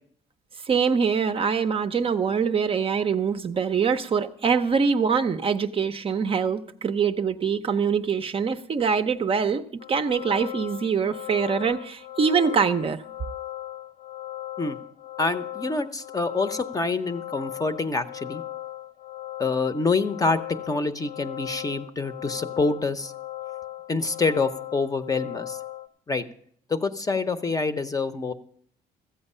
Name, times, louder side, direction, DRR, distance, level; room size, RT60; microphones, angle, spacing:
voice 1, 0.7-9.6 9.9-13.0, right 6 dB, 35° right, 0.5 m, -24 dB
sound 1, 9.8-25.9, left 14 dB, 80° left, 0.6 m, -38 dB
voice 2, 15.2-18.4 19.4-20.4 20.7-23.1 23.9-25.6 26.1-26.2 26.7-28.3, left 3 dB, 20° left, 0.7 m, -26 dB
14.0 x 7.9 x 5.5 m
cardioid pair, 110°, 17 cm